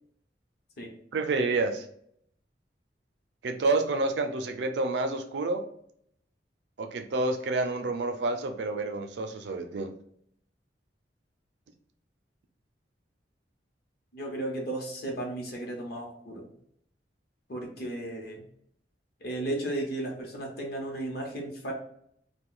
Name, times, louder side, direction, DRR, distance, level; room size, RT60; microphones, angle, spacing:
voice 1, 1.1-1.9 3.4-5.6 6.8-9.9, right 3 dB, 70° right, 7 dB, 0.4 m, -29 dB
voice 2, 14.1-16.5 17.5-18.4 19.2-21.7, right 1 dB, 60° left, 0 dB, 0.9 m, -34 dB
2.5 x 2.3 x 3.6 m, 0.68 s
head